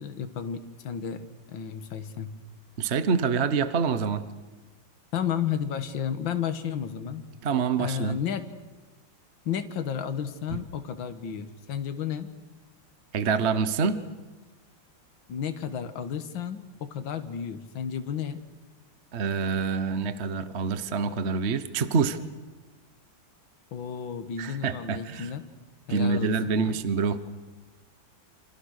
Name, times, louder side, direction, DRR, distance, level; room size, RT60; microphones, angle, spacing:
voice 1, 0.0-2.3 5.1-7.2 7.8-8.5 9.5-12.3 15.3-18.4 23.7-25.4 25.9-26.8, left 8 dB, 75° left, 9 dB, 2.2 m, -32 dB
voice 2, 2.8-4.2 7.4-8.2 10.5-10.6 13.1-14.0 19.1-22.2 24.4-25.3 25.9-27.2, right 5 dB, 40° right, 12 dB, 1.1 m, -26 dB
28.5 x 27.0 x 6.5 m, 1.2 s
omnidirectional pair, 2.1 m